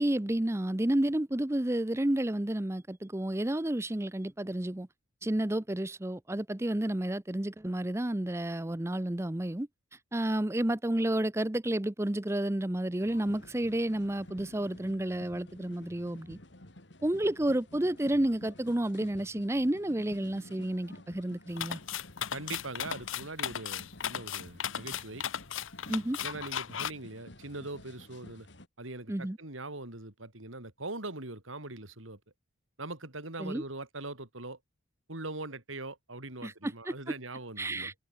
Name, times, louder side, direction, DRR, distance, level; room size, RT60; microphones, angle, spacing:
voice 1, 0.0-4.9 5.2-9.7 10.1-16.4 17.0-21.8 25.9-26.2 29.1-29.4 33.4-33.6 36.4-36.9 37.6-37.9, right 1 dB, 15° right, 0.6 m, -31 dB
sound 1, 13.0-28.7, left 1 dB, 60° left, 3.4 m, -52 dB
sound 2, 21.6-26.9, left 9 dB, 85° left, 0.8 m, -36 dB
voice 2, 22.3-25.2 26.2-28.5 28.8-32.2 32.8-34.6 35.1-37.9, right 2 dB, 85° right, 3.9 m, -41 dB
head